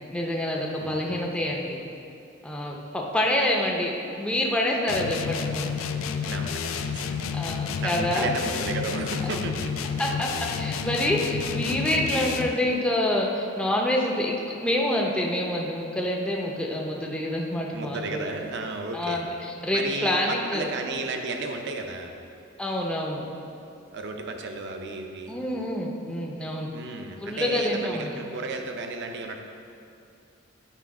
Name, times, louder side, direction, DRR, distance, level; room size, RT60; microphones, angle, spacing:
voice 1, 0.1-1.8 2.4-5.7 7.3-8.3 10.0-14.4 14.6-18.2 18.9-20.7 22.6-23.2 25.3-26.7 27.2-28.1, left 1 dB, 5° left, -2 dB, 0.5 m, -27 dB
voice 2, 0.8-1.5 6.2-7.3 7.8-9.9 17.7-19.2 19.7-22.1 23.9-25.4 26.7-29.4, right 3 dB, 60° right, 4 dB, 0.6 m, -34 dB
sound 1, 4.9-12.6, left 6 dB, 85° left, 0.4 m, -30 dB
8.4 x 3.3 x 4.8 m, 2.6 s
head